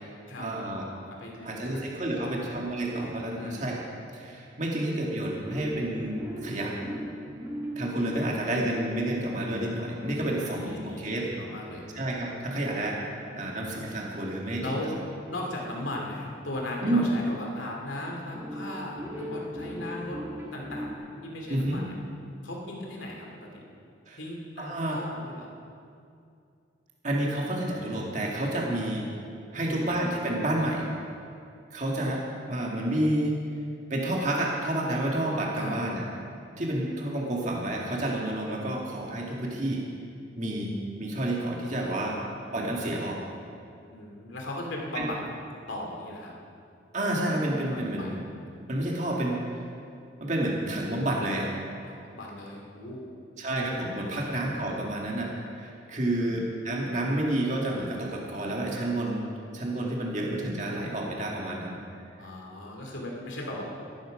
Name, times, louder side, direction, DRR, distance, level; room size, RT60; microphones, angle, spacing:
voice 1, 0.4-0.8 1.4-3.8 4.1-6.7 7.8-11.3 11.9-14.9 16.8-17.0 21.5-21.8 24.1-24.2 24.6-25.0 27.0-29.1 29.5-30.9 31.7-33.4 33.9-36.0 36.6-39.8 40.4-42.2 42.5-43.2 44.9-45.1 46.9-48.2 48.7-49.4 50.2-51.5 53.4-61.8, right 1 dB, 40° right, -2 dB, 2.0 m, -30 dB
voice 2, 1.1-1.9 2.2-2.6 3.3-3.7 10.1-11.8 14.6-14.9 15.3-20.2 20.5-21.9 22.4-23.3 24.2-25.5 29.5-29.9 35.6-35.8 41.6-42.2 43.9-45.2 45.7-46.4 47.7-48.2 51.9-53.1 54.1-54.4 56.2-56.4 62.2-63.6, left 1 dB, 85° left, -1 dB, 2.8 m, -38 dB
sound 1, 5.5-17.6 18.3-20.9, equal, 15° right, 2.2 m, -40 dB
14.0 x 13.0 x 5.1 m, 2.5 s
head